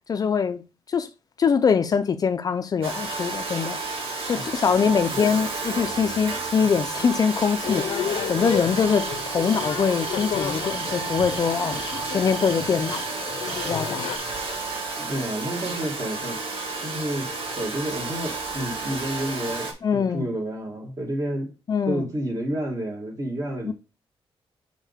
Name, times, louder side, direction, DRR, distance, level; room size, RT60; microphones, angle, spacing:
voice 1, 0.1-0.6 0.9-1.1 1.4-4.0 4.3-11.8 12.1-13.0 13.7-14.0 19.8-20.2 21.7-22.1 23.7-23.8, left 6 dB, 40° left, 0.5 m, -23 dB
Domestic sounds home sounds, 2.8-19.7, right 3 dB, 70° right, 1.8 m, -31 dB
voice 2, 4.8-5.4 15.0-16.4 16.8-21.5 21.9-23.7, right 1 dB, 35° right, 2.2 m, -30 dB
sound 1, 7.6-14.2, left 8 dB, 80° left, 0.7 m, -32 dB
sound 2, 8.5-14.2, right 2 dB, 10° right, 1.3 m, -41 dB
5.5 x 5.3 x 3.5 m
wide cardioid pair, 135°, 10 cm